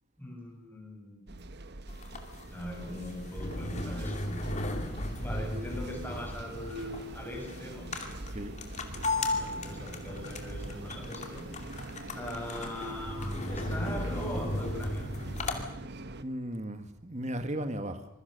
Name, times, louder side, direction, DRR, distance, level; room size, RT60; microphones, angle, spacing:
voice 1, 0.2-1.4 2.5-4.4 5.2-7.9 9.3-11.8 12.1-15.1, left 1 dB, 10° left, -1 dB, 7.0 m, -40 dB
sound 1, 1.3-16.2, right 2 dB, 50° right, 1.1 m, -44 dB
sound 2, 1.9-15.6, left 2 dB, 30° left, 2.5 m, -36 dB
voice 2, 16.2-18.1, right 1 dB, 30° right, 9 dB, 1.6 m, -36 dB
26.0 x 22.0 x 6.6 m, 0.80 s
head